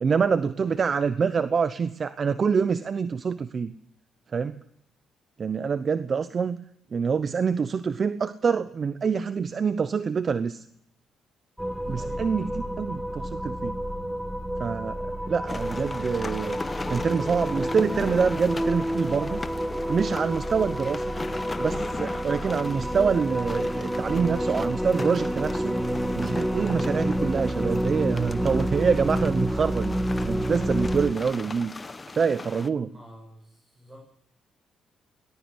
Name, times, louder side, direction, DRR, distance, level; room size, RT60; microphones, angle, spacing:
voice 1, 0.0-3.7 4.3-4.5 5.4-6.6 6.9-10.6 11.9-13.8 14.6-15.0 15.3-16.6 16.9-19.4 19.9-21.0 21.6-25.8 26.2-29.9 30.2-31.7 32.1-32.9, right 6 dB, 45° right, 13 dB, 0.8 m, -26 dB
voice 2, 0.6-1.0 11.9-12.5 32.9-34.1, equal, 25° right, -2 dB, 7.6 m, -49 dB
sound 1, 11.6-31.1, right 1 dB, 5° right, 1.5 m, -29 dB
sound 2, 15.5-32.7, left 3 dB, 25° left, 1.3 m, -38 dB
20.0 x 18.5 x 7.9 m, 0.70 s
cardioid pair, 90°, 0 cm